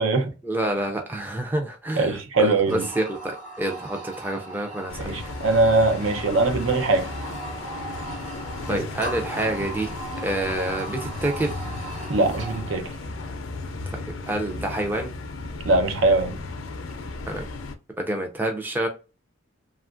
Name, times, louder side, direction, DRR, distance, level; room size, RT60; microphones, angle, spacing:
voice 1, 0.4-5.1 8.7-9.9 10.2-11.5 13.9-15.1 17.3-17.4 18.0-18.9, right 1 dB, 10° right, 0.4 m, -28 dB
voice 2, 2.0-2.9 5.0-7.1 8.7-8.8 12.1-12.9 15.7-16.3, right 3 dB, 75° right, 0.6 m, -21 dB
sound 1, 2.7-12.8, right 2 dB, 30° right, 1.1 m, -38 dB
sound 2, 4.9-17.7, left 2 dB, 90° left, 0.5 m, -35 dB
2.9 x 2.4 x 2.4 m
head